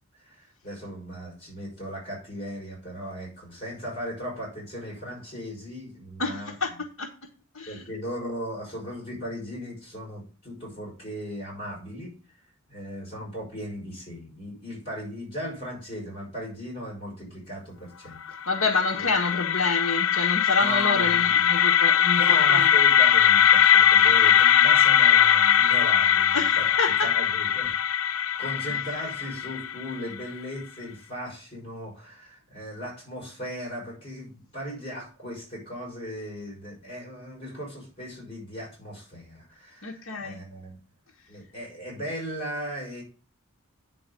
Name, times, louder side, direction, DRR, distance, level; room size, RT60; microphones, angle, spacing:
voice 1, 0.2-6.5 7.7-12.1 12.7-18.2 19.0-19.1 20.6-21.3 22.2-26.7 27.0-27.7 28.4-40.8 41.3-43.0, equal, 25° left, -3 dB, 5.5 m, -37 dB
voice 2, 6.2-7.1 7.5-7.9 18.5-22.7 26.3-27.1 39.8-40.4, left 3 dB, 65° left, -2 dB, 1.2 m, -28 dB
sound 1, 18.3-30.2, left 9 dB, 85° left, 0.5 m, -20 dB
9.6 x 4.1 x 6.6 m, 0.36 s
head